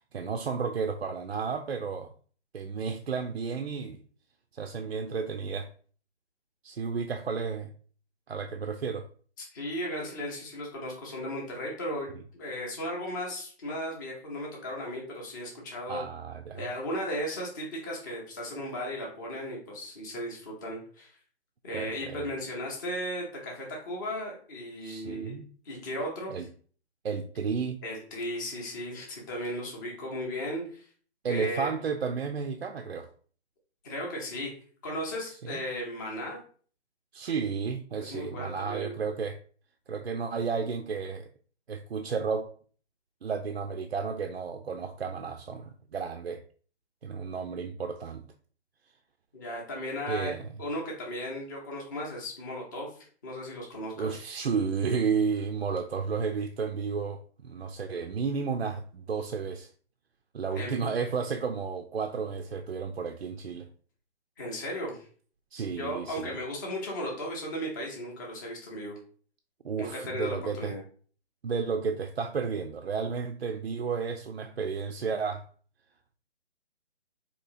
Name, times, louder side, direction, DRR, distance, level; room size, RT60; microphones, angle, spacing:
voice 1, 0.1-2.1 2.5-4.0 4.5-5.7 6.6-7.7 8.3-9.1 15.9-16.6 21.7-22.3 24.8-25.5 26.3-26.5 27.0-27.8 31.2-33.1 35.4-35.6 37.1-39.4 39.9-41.3 41.7-42.5 43.2-46.4 47.0-48.2 50.1-50.5 54.0-59.7 60.3-63.7 65.5-66.4 69.6-70.8 71.4-75.5, right 5 dB, 65° right, 0.5 m, -32 dB
voice 2, 9.4-16.0 16.5-21.2 21.6-25.4 25.6-26.4 27.8-30.9 31.3-31.7 33.8-34.6 34.8-36.4 38.0-39.0 49.3-54.2 60.5-60.8 64.4-65.0 65.8-69.0 69.8-70.8, equal, 15° left, 0.7 m, -36 dB
4.2 x 2.9 x 2.7 m
figure-of-eight pair, 145°, 33 cm